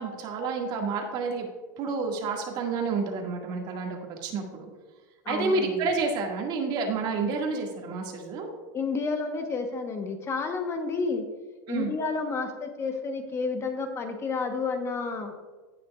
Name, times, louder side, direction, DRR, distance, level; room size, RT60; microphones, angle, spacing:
voice 1, 0.0-1.5 1.8-4.7 5.3-8.5 11.7-11.9, right 4 dB, 45° right, 1 dB, 1.9 m, -29 dB
voice 2, 5.2-5.9 8.7-11.2 11.7-15.3, left 4 dB, 25° left, 5 dB, 1.1 m, -30 dB
17.0 x 5.9 x 2.4 m, 1.3 s
supercardioid pair, 120°, 10 cm